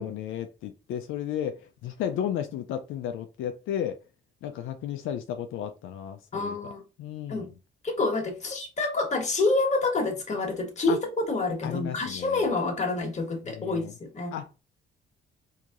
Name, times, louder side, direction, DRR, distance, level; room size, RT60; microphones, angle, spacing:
voice 1, 0.0-4.0 4.4-6.6 7.0-7.5 10.9-11.0 11.6-12.4 13.5-13.9 14.3-14.6, left 10 dB, 85° left, 0.5 m, -33 dB
voice 2, 6.3-6.8 7.3-7.5 7.8-14.3, left 3 dB, 35° left, 1.5 m, -28 dB
4.5 x 2.8 x 2.5 m
cardioid pair, 90°, 20 cm